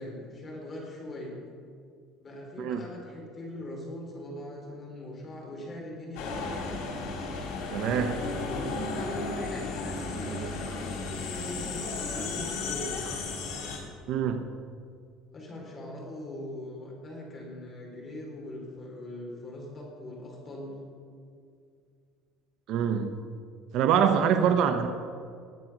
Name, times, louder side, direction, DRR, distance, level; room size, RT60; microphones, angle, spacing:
voice 1, 0.0-1.4 2.2-6.4 8.2-12.9 15.3-20.8 24.3-24.7, left 1 dB, 25° left, -1 dB, 3.8 m, -41 dB
sound 1, 6.2-13.8, left 3 dB, 80° left, 3.6 m, -34 dB
voice 2, 7.7-8.2 14.1-14.5 22.7-23.1 23.7-24.9, right 8 dB, 50° right, 7 dB, 0.8 m, -25 dB
20.0 x 7.8 x 6.0 m, 2.2 s
cardioid pair, 170°, 0 cm